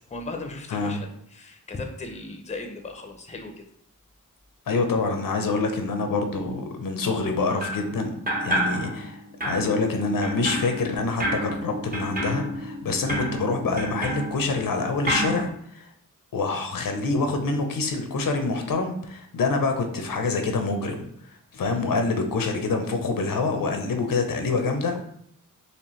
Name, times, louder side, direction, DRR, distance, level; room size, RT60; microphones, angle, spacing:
voice 1, 0.1-3.5 21.6-21.8, left 2 dB, 20° left, 4 dB, 0.5 m, -37 dB
voice 2, 0.7-1.0 4.7-9.2 9.4-15.9 16.3-21.0 21.5-25.0, left 3 dB, 85° left, 5 dB, 0.7 m, -26 dB
sound 1, 7.6-7.9 8.3-9.1 9.4-14.7 15.1-15.4, right 1 dB, 25° right, 0.8 m, -30 dB
4.3 x 3.2 x 3.1 m, 0.68 s
wide cardioid pair, 120°, 33 cm